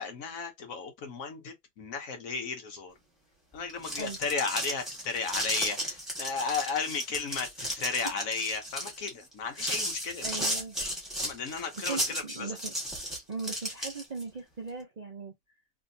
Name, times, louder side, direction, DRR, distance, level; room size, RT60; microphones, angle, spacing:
voice 1, 0.0-2.9 3.5-10.5 11.2-12.6, left 5 dB, 65° left, 1.3 m, -34 dB
sound 1, 3.6-14.2, equal, ahead, 1.3 m, -34 dB
voice 2, 10.2-10.7 11.9-12.7 13.3-15.3, right 4 dB, 45° right, 0.5 m, -39 dB
3.3 x 2.6 x 2.7 m
omnidirectional pair, 1.6 m